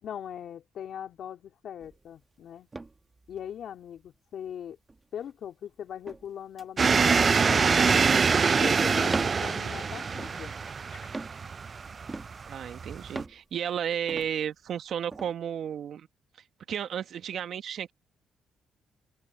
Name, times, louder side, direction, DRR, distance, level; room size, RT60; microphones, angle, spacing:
voice 1, 0.0-2.7 3.3-4.8 5.1-8.1 8.6-10.6 10.9-11.1, left 9 dB, 65° left, 3.6 m, -40 dB
sound 1, 1.8-2.2 2.7-3.6 4.0-4.1 4.9-5.3 6.1-6.3 6.6-6.7 7.1-7.3 8.1-8.5 9.0-9.6 10.2-10.6 11.1-11.4 12.1-12.6 13.1-13.4 14.1-14.4 15.1-15.3, right 3 dB, 20° right, 1.5 m, -39 dB
sound 2, 6.8-13.2, right 5 dB, 40° right, 0.6 m, -25 dB
voice 2, 12.4-16.1 16.7-17.9, right 9 dB, 65° right, 1.6 m, -33 dB
open air
cardioid pair, 90°, 0 cm